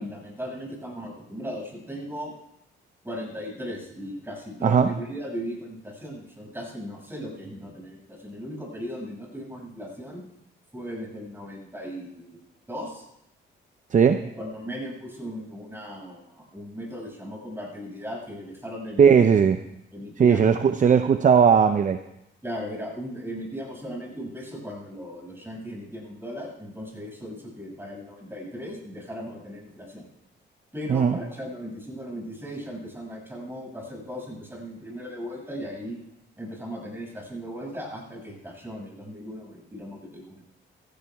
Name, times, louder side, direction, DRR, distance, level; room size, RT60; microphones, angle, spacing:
voice 1, 0.0-2.3 3.0-10.2 10.7-12.4 12.7-13.0 14.4-19.2 19.9-20.4 22.4-30.1 30.7-36.0 36.4-40.4, equal, 10° right, -2 dB, 6.6 m, -37 dB
voice 2, 13.9-14.2 19.0-19.6 20.2-22.0 30.9-31.2, right 7 dB, 40° right, 9 dB, 0.7 m, -18 dB
15.5 x 15.0 x 3.6 m, 0.83 s
cardioid pair, 90°, 20 cm